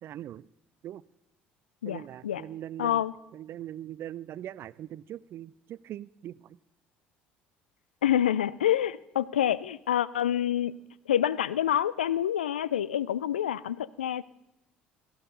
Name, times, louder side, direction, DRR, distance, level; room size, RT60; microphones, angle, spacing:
voice 1, 0.0-0.5 0.8-1.0 1.8-3.0 3.3-6.6, right 12 dB, 45° right, 21 dB, 0.4 m, -41 dB
voice 2, 1.8-2.4 2.8-3.1 8.0-10.8 11.1-14.2, left 10 dB, 80° left, 19 dB, 0.4 m, -27 dB
17.5 x 14.5 x 3.9 m, 0.88 s
figure-of-eight pair, 55°, 5 cm